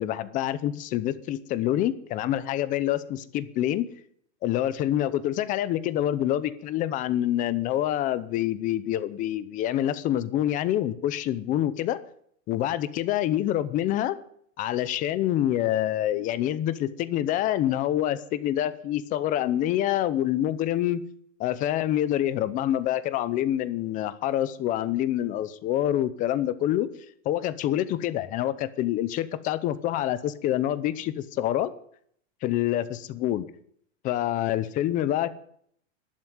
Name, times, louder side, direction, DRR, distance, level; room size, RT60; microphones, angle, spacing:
voice 1, 0.0-3.9 4.4-12.0 12.5-14.2 14.6-21.0 21.4-26.9 27.2-31.7 32.4-33.5 34.0-35.4, left 12 dB, 20° left, 15 dB, 0.7 m, -26 dB
12.0 x 11.0 x 9.4 m, 0.68 s
supercardioid pair, 165°, 38 cm